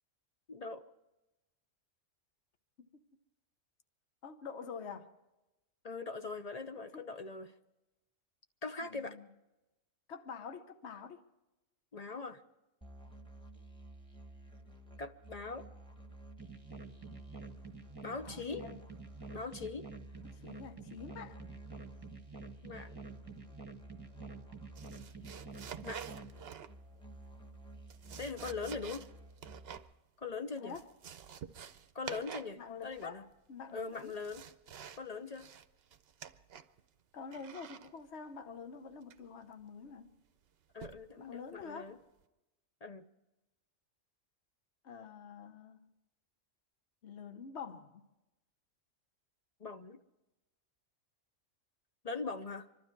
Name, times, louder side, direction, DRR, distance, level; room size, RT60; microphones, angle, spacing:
voice 1, 0.5-0.8 5.8-7.5 8.6-9.2 11.9-12.4 15.0-15.7 18.0-18.6 19.3-19.9 22.6-22.9 25.8-26.0 28.2-29.0 30.2-30.7 31.9-33.2 33.7-34.4 35.0-35.5 40.7-42.0 42.8-43.0 49.6-50.0 52.0-52.7, left 4 dB, 40° left, 0.7 m, -41 dB
voice 2, 4.2-5.1 6.9-7.1 8.8-9.3 10.1-11.2 18.2-18.8 20.2-21.4 28.6-29.0 30.6-30.9 32.6-34.1 37.1-40.2 41.2-42.0 44.8-45.8 47.0-48.1, left 5 dB, 60° left, 1.3 m, -47 dB
Musical instrument, 12.8-29.8, right 2 dB, 5° left, 1.4 m, -53 dB
sound 1, 16.4-26.3, right 4 dB, 20° right, 1.0 m, -49 dB
sound 2, 24.8-27.0 27.7-29.9 30.2-30.3 30.6-32.6 32.8-33.3 33.8-35.1 35.3-36.8 37.3-37.9 39.1-39.4 40.8-41.1 41.6-41.8, right 8 dB, 60° right, 0.8 m, -48 dB
25.5 x 12.5 x 4.6 m
omnidirectional pair, 1.3 m